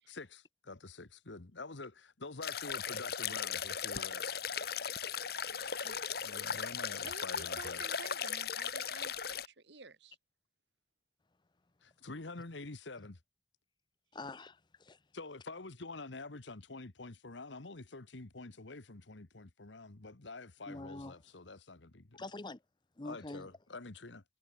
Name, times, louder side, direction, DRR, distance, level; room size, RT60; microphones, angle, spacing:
voice 1, 0.1-4.3 6.2-7.8 11.8-13.2 15.1-22.2 23.0-24.2, left 3 dB, 75° left, 1.4 m, -47 dB
sound 1, 2.4-9.5, left 7 dB, 55° left, 1.9 m, -37 dB
voice 2, 5.8-6.1 7.0-10.2, right 3 dB, 70° right, 2.1 m, -52 dB
voice 3, 14.1-15.0 20.7-21.1 22.1-22.6 23.0-23.5, left 2 dB, 25° left, 0.6 m, -45 dB
head